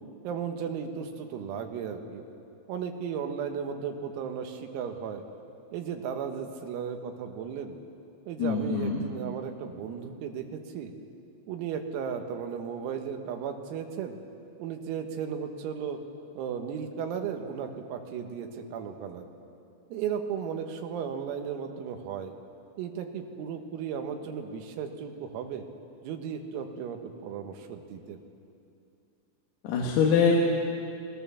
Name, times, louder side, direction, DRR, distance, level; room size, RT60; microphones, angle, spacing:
voice 1, 0.2-2.2 2.7-5.2 5.7-7.8 8.3-10.9 11.5-14.2 14.6-16.0 16.4-19.3 19.9-22.3 22.8-25.6 26.0-28.2, right 7 dB, 85° right, 4 dB, 4.3 m, -35 dB
voice 2, 8.4-9.0 29.6-30.3, left 6 dB, 85° left, -2 dB, 4.7 m, -24 dB
29.5 x 21.0 x 7.1 m, 2.6 s
omnidirectional pair, 6.0 m